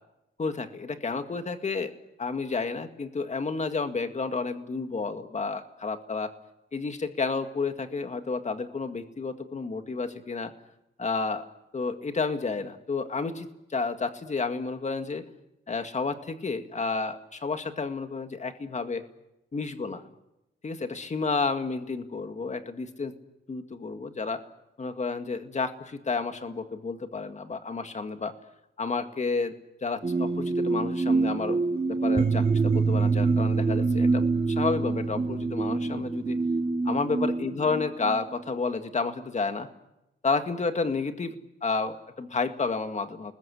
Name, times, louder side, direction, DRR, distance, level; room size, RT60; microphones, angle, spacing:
voice 1, 0.4-1.9 2.2-6.3 6.7-10.5 11.0-11.4 11.7-15.2 15.7-19.0 19.5-20.0 20.6-23.1 23.5-24.4 24.8-28.3 28.8-29.5 29.8-31.6 31.9-36.4 36.9-39.7 40.2-43.3, left 4 dB, 35° left, 7 dB, 2.0 m, -31 dB
sound 1, 30.0-38.2, right 4 dB, 25° right, 2.2 m, -25 dB
30.0 x 20.5 x 8.4 m, 0.89 s
wide cardioid pair, 155°, 21 cm